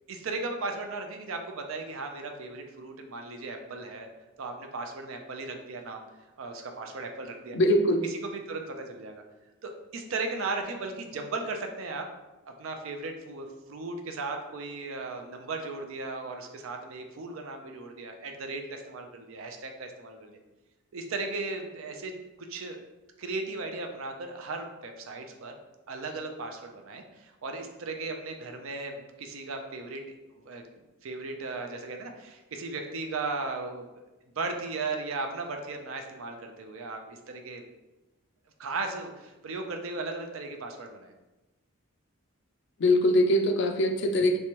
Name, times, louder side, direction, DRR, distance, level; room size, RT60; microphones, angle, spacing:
voice 1, 0.1-4.1 4.4-6.0 6.4-7.6 8.1-9.2 9.6-12.1 12.4-20.4 20.9-22.8 23.2-25.5 25.9-30.0 30.4-30.6 31.0-33.9 34.4-37.6 38.6-41.1, right 3 dB, 65° right, 4 dB, 0.5 m, -36 dB
voice 2, 7.5-8.1 42.8-44.4, left 1 dB, 55° left, 5 dB, 0.4 m, -22 dB
3.4 x 3.1 x 2.9 m, 1.1 s
head